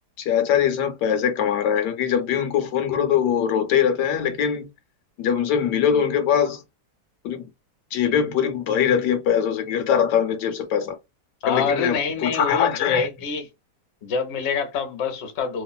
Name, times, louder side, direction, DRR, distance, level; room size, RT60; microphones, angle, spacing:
voice 1, 0.2-4.7 5.2-6.6 7.2-7.5 7.9-11.0 11.5-13.1, left 8 dB, 80° left, 1.2 m, -22 dB
voice 2, 11.4-13.5 14.0-15.6, left 5 dB, 50° left, 0.8 m, -26 dB
2.9 x 2.5 x 2.2 m
omnidirectional pair, 1.8 m